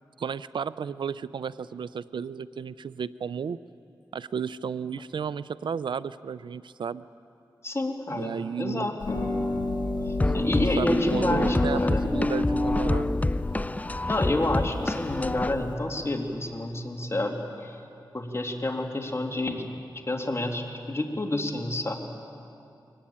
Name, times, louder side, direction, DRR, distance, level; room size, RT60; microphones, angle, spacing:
voice 1, 0.2-3.6 4.1-7.0 8.1-8.9 10.5-13.1, right 6 dB, 80° right, 16 dB, 0.5 m, -33 dB
voice 2, 7.6-9.2 10.1-12.1 14.1-17.8 18.1-19.7 20.1-21.9, left 1 dB, 35° left, 2 dB, 2.9 m, -29 dB
Harp, 9.0-15.7, left 2 dB, 70° left, 6.3 m, -32 dB
sound 1, 10.2-15.5, left 2 dB, 20° left, 0.5 m, -27 dB
23.5 x 18.5 x 8.8 m, 2.6 s
cardioid pair, 55°, 8 cm